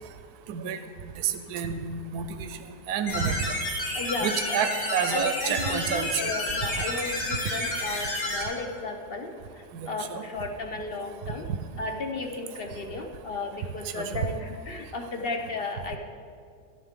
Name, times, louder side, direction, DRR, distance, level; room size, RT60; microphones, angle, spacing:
voice 1, 0.5-0.8 1.2-2.5 2.9-3.4 4.2-6.2 9.7-10.2 13.9-14.3, right 7 dB, 75° right, 8 dB, 1.1 m, -29 dB
sound 1, 3.1-8.4, left 1 dB, 90° left, 2.5 m, -30 dB
voice 2, 3.9-4.7 5.1-11.5 11.8-16.0, left 3 dB, 50° left, 4 dB, 0.7 m, -34 dB
13.5 x 10.5 x 3.7 m, 2.3 s
omnidirectional pair, 1.8 m